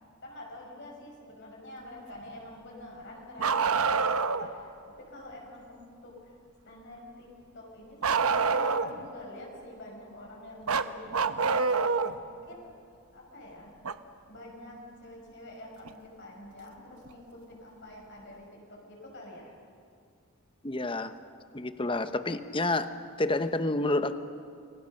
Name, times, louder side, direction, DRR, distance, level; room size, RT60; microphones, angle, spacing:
voice 1, 0.2-6.3 6.6-12.8 13.1-13.7 14.3-19.5, left 1 dB, 50° left, -2 dB, 5.5 m, -47 dB
Bark, 3.4-4.5 8.0-9.1 10.7-12.2 13.8-13.9 15.9-16.0 17.1-17.2, right 5 dB, 80° right, 0.9 m, -26 dB
voice 2, 20.6-21.1 21.5-22.9 23.2-24.2, left 2 dB, 25° left, 11 dB, 0.9 m, -29 dB
30.0 x 22.5 x 6.6 m, 2.4 s
head